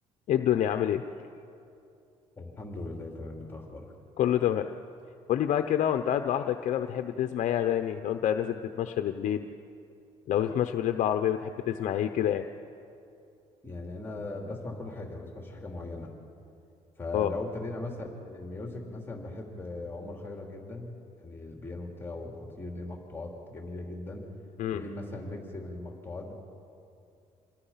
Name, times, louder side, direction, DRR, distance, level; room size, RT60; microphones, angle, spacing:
voice 1, 0.3-1.0 4.2-4.7 5.3-9.5 10.3-12.4 17.1-17.3 24.6-24.8, left 10 dB, 65° left, 7 dB, 0.8 m, -27 dB
voice 2, 2.4-3.9 13.6-16.1 17.0-21.0 21.2-24.2 24.7-26.3, left 2 dB, 15° left, 0 dB, 3.2 m, -39 dB
27.0 x 20.5 x 5.8 m, 2.6 s
cardioid pair, 105°, 14 cm